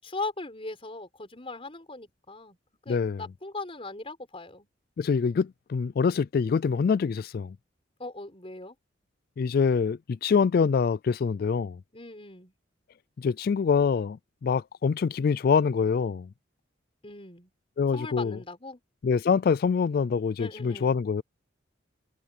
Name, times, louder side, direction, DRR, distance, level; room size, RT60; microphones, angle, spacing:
voice 1, 0.0-2.6 2.9-4.7 8.0-8.8 11.9-12.5 17.0-17.5 17.9-18.8 20.4-21.0, left 3 dB, 30° left, 5.7 m, -39 dB
voice 2, 2.9-3.2 5.0-7.6 9.4-11.8 13.2-16.3 17.8-18.4 19.0-21.2, left 5 dB, 50° left, 0.3 m, -25 dB
head